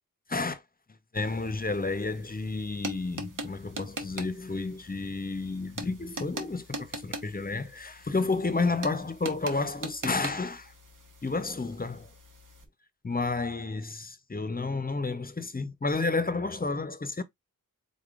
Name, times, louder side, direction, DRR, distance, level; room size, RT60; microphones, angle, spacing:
voice 1, 0.3-0.6 1.1-10.7 11.2-12.1 13.0-17.2, left 3 dB, 25° left, 0.7 m, -31 dB
sound 1, 1.1-12.7, right 2 dB, 60° right, 1.1 m, -42 dB
3.7 x 3.7 x 2.4 m
cardioid pair, 40°, 35 cm